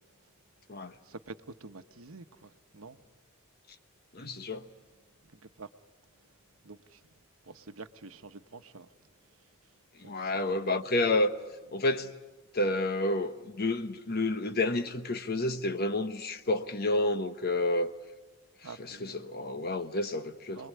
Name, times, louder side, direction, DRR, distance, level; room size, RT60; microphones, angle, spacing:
voice 1, 1.1-3.0 5.6-5.7 6.6-7.0 7.5-8.9 10.2-10.8 18.6-19.3 20.6-20.7, right 3 dB, 80° right, 1.0 m, -47 dB
voice 2, 4.1-4.6 10.0-11.3 11.7-12.1 12.5-17.9 18.8-20.7, left 2 dB, 45° left, 1.1 m, -30 dB
27.5 x 21.5 x 8.4 m
head